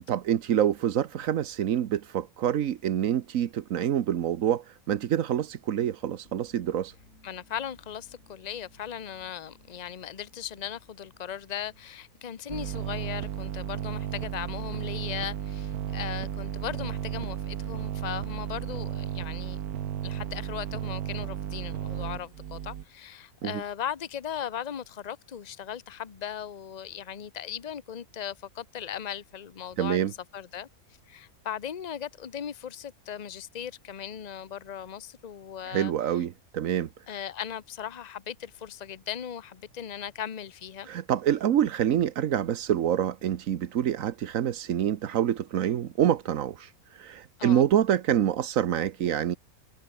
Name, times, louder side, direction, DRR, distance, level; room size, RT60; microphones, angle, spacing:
voice 1, 0.1-6.9 23.4-23.6 29.8-30.1 35.6-36.9 40.8-49.4, right 10 dB, 65° right, 1.2 m, -26 dB
sound 1, 6.2-17.7, left 2 dB, 50° left, 6.2 m, -62 dB
voice 2, 7.2-19.8 20.0-30.7 31.1-36.2 37.1-40.9 47.4-47.7, left 9 dB, 35° left, 0.8 m, -38 dB
sound 2, 12.5-22.8, right 10 dB, 85° right, 1.4 m, -34 dB
omnidirectional pair, 1.6 m